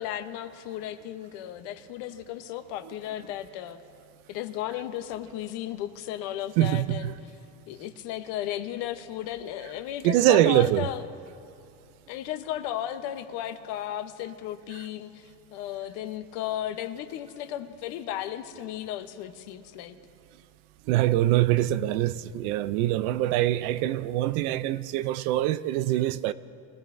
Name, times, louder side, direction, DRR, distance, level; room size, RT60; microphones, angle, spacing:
voice 1, 0.0-3.8 4.3-7.2 7.7-11.0 12.1-20.0, left 12 dB, 70° left, 1.0 m, -35 dB
voice 2, 6.6-7.1 10.0-10.9 20.9-26.3, right 14 dB, 80° right, 0.6 m, -24 dB
23.0 x 15.5 x 2.6 m
cardioid pair, 130°, 43 cm